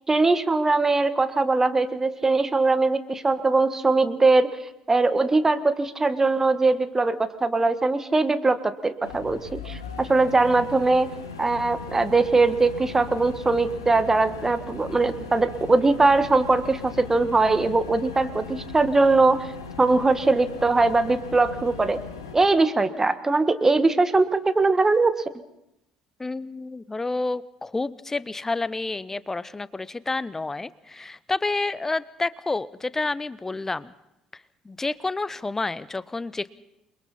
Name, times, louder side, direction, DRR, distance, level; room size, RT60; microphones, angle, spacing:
voice 1, 0.1-4.5 4.9-11.1 11.4-19.5 19.8-22.0 22.3-25.2, right 3 dB, 20° right, 11 dB, 1.6 m, -21 dB
sound 1, 9.0-22.4, left 5 dB, 80° left, 2.0 m, -39 dB
voice 2, 26.2-33.9 34.3-36.5, left 3 dB, 20° left, 19 dB, 0.8 m, -29 dB
28.5 x 22.5 x 4.3 m, 0.84 s
figure-of-eight pair, 55°, 2 cm